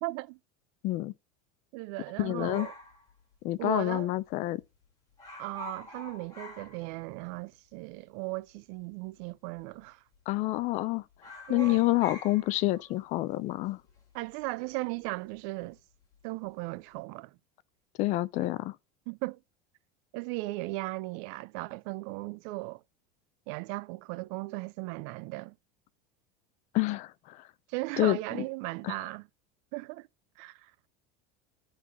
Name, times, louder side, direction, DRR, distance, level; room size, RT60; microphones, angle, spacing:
voice 1, 0.0-0.4 1.7-2.7 3.6-4.1 5.4-10.0 11.5-11.8 14.1-15.8 16.2-17.4 19.1-19.4 20.1-22.8 23.5-25.5 27.7-29.3 29.7-30.1 30.4-30.7, right 22 dB, 55° right, 0.4 m, -37 dB
voice 2, 2.2-2.7 3.4-4.6 10.3-11.0 11.5-13.8 18.0-18.7 26.7-27.4 28.0-28.2 28.8-28.9, left 17 dB, 40° left, 0.4 m, -28 dB
sound 1, 2.5-4.0 4.2-4.3 4.6-4.8 5.1-7.4 7.7-7.8 8.6-9.2 9.6-9.8 10.1-10.8 11.1-15.7 16.0-16.5, left 2 dB, 20° left, 2.8 m, -47 dB
11.0 x 3.8 x 5.9 m
supercardioid pair, 155°, 20 cm